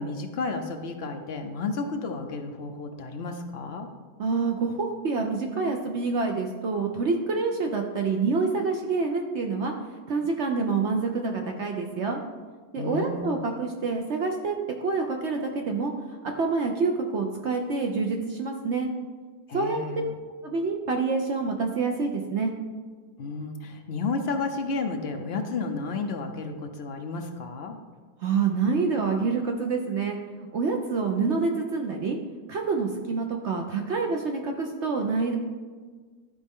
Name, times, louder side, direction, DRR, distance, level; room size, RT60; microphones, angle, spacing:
voice 1, 0.0-3.9 12.8-13.4 19.5-20.2 23.2-27.8, left 3 dB, 65° left, 5 dB, 0.6 m, -32 dB
voice 2, 4.2-9.7 10.1-12.2 12.7-18.9 19.5-20.1 20.4-22.5 28.2-30.2 30.5-32.2 32.5-35.4, right 4 dB, 60° right, 3 dB, 0.7 m, -27 dB
12.0 x 4.2 x 3.6 m, 1.5 s
omnidirectional pair, 1.7 m